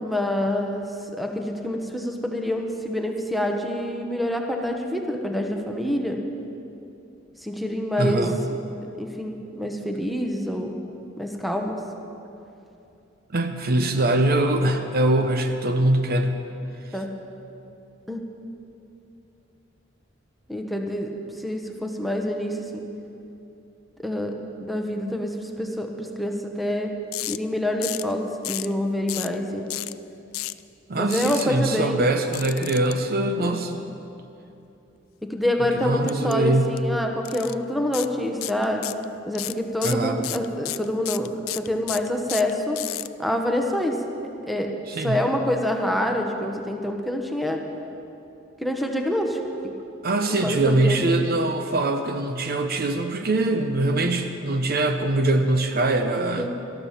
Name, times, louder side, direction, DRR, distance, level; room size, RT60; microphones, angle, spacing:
voice 1, 0.0-6.2 7.4-8.3 9.0-10.8 11.2-11.8 16.9-17.1 18.1-18.2 20.5-22.9 24.0-24.4 24.6-26.9 27.3-29.7 30.9-32.1 33.4-33.6 35.2-38.9 39.3-42.8 43.2-44.0 44.4-44.7 45.0-47.6 48.6-49.4 50.4-51.0 56.4-56.5, left 1 dB, ahead, 2 dB, 1.0 m, -26 dB
voice 2, 8.0-8.4 13.3-16.4 30.9-33.8 35.7-36.7 39.8-40.2 44.9-45.2 50.0-56.5, right 2 dB, 50° right, 6 dB, 0.7 m, -23 dB
sound 1, 27.1-27.4 27.8-28.1 28.4-28.7 29.1-29.4 29.7-29.9 30.3-30.6 31.1-31.4 32.3-32.9 36.1-36.3 36.6-36.8 37.2-37.5 37.9-38.1 38.4-39.0 39.3-43.1, left 18 dB, 90° left, 0.3 m, -31 dB
13.0 x 12.0 x 5.8 m, 2.8 s
head